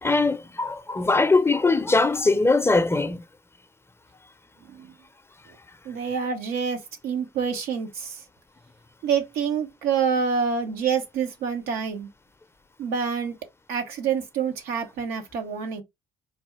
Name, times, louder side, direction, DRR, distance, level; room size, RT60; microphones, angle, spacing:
voice 1, 0.0-3.2, left 3 dB, 15° left, 0.6 m, -21 dB
voice 2, 4.6-4.9 5.8-8.2 9.0-12.1 12.8-13.4 13.7-15.8, right 6 dB, 80° right, 0.9 m, -27 dB
4.3 x 2.3 x 3.1 m
supercardioid pair, 65°, 15 cm